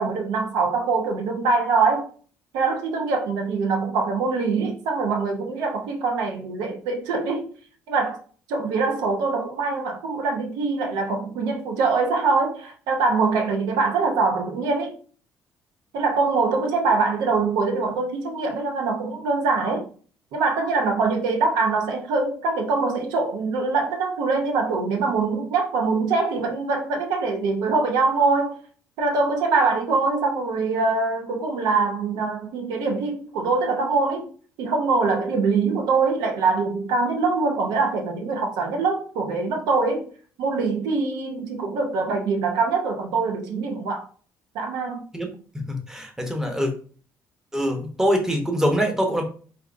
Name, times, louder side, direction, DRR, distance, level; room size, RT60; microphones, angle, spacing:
voice 1, 0.0-2.1 2.5-7.5 7.9-8.2 8.5-15.0 15.9-19.9 20.3-28.6 29.0-34.3 34.6-40.1 40.4-44.1 44.5-45.1, right 4 dB, 90° right, 0.7 m, -23 dB
voice 2, 45.7-46.7 47.5-49.2, equal, 10° right, 0.9 m, -24 dB
4.6 x 2.5 x 2.5 m
cardioid pair, 100°, 6 cm